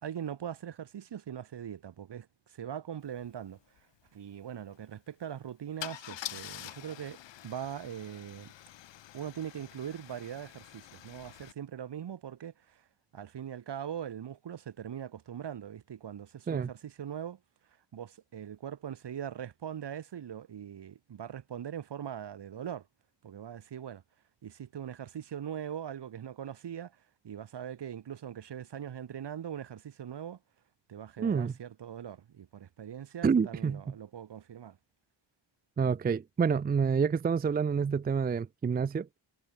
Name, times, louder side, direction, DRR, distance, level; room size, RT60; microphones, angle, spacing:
voice 1, 0.0-3.6 4.1-8.5 9.1-12.8 13.1-17.4 17.9-22.9 23.2-24.0 24.4-26.9 27.2-30.4 30.9-34.8, right 9 dB, 65° right, 2.2 m, -41 dB
Car / Engine starting / Idling, 3.2-3.3 3.6-3.8 5.8-11.5, left 13 dB, 75° left, 1.3 m, -46 dB
voice 2, 31.2-31.5 33.2-33.8 35.8-39.2, right 6 dB, 20° right, 0.5 m, -28 dB
supercardioid pair, 50°, 44 cm